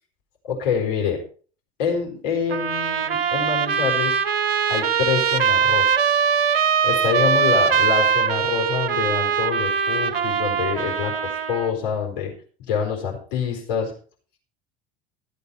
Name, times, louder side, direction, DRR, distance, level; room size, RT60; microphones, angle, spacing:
voice 1, 0.5-1.2 1.8-4.2 4.7-6.2 6.8-12.3 12.7-13.9, left 7 dB, 65° left, 1 dB, 4.2 m, -26 dB
Trumpet, 2.5-11.7, right 6 dB, 85° right, 0.9 m, -21 dB
14.5 x 8.5 x 4.5 m, 0.40 s
hypercardioid pair, 70°, 29 cm